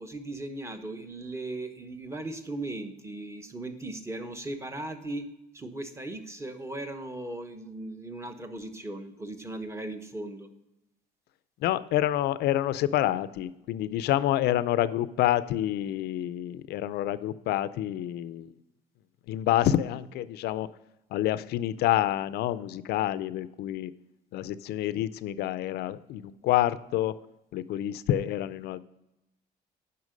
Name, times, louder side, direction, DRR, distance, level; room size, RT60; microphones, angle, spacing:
voice 1, 0.0-5.3 5.5-10.5, right 2 dB, 15° right, 7 dB, 1.1 m, -37 dB
voice 2, 11.6-18.5 19.3-20.7 21.1-23.9 24.3-27.1 27.5-28.8, left 13 dB, 75° left, 15 dB, 0.5 m, -28 dB
9.6 x 5.8 x 5.2 m, 0.92 s
cardioid pair, 110°, 17 cm